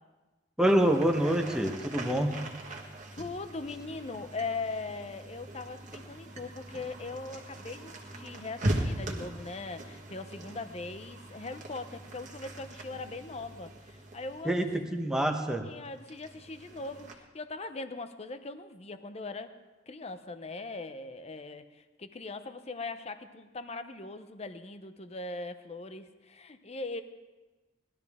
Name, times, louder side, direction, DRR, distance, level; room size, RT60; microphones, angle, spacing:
voice 1, 0.6-2.3 14.4-15.7, right 1 dB, 5° right, 4 dB, 1.0 m, -26 dB
sound 1, 0.7-15.2 15.8-17.1, right 1 dB, 45° right, 1.5 m, -40 dB
voice 2, 2.7-14.7 15.6-19.5 19.9-27.0, left 3 dB, 35° left, 10 dB, 0.7 m, -40 dB
19.0 x 12.0 x 3.6 m, 1.2 s
head